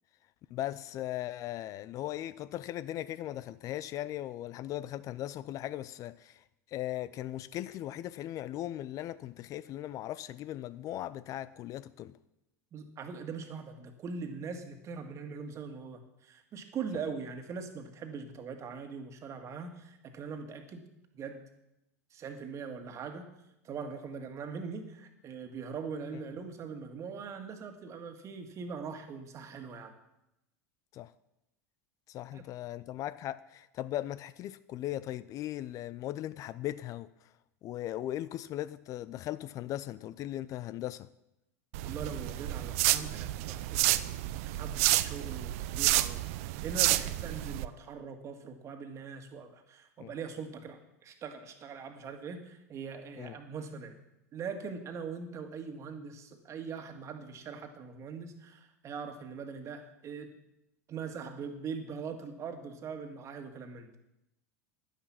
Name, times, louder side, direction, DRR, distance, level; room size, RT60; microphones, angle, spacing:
voice 1, 0.5-12.1 30.9-31.1 32.1-37.1 37.6-41.1 50.0-50.1 53.2-53.4, left 13 dB, 40° left, 17 dB, 0.5 m, -38 dB
voice 2, 12.7-20.8 21.1-21.4 22.1-23.3 23.6-29.9 32.3-32.4 41.8-44.1 44.6-54.0 54.3-60.3 60.9-63.9, right 5 dB, 35° right, 7 dB, 1.8 m, -41 dB
sound 1, 41.7-47.7, right 16 dB, 60° right, 0.5 m, -30 dB
11.0 x 10.0 x 5.9 m, 0.89 s
figure-of-eight pair, 85°, 9 cm